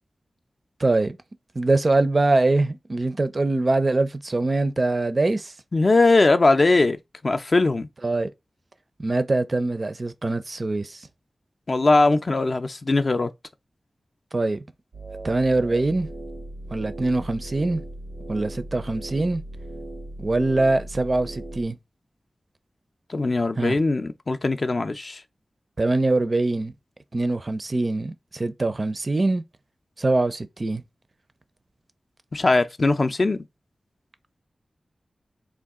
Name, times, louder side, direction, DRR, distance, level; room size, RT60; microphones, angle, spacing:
voice 1, 0.8-1.2 1.6-5.5 8.0-8.3 9.0-11.1 14.3-14.6 15.2-16.1 16.7-17.8 18.3-19.4 20.2-21.8 23.6-23.8 25.8-26.7 27.1-29.4 30.0-30.8, right 2 dB, 40° right, 0.4 m, -23 dB
voice 2, 5.7-7.0 7.2-7.9 11.7-13.3 23.1-25.2 32.3-33.4, left 3 dB, 50° left, 0.4 m, -20 dB
sound 1, 14.9-21.6, right 1 dB, 85° right, 0.6 m, -38 dB
3.6 x 2.3 x 3.5 m
wide cardioid pair, 85°, 0 cm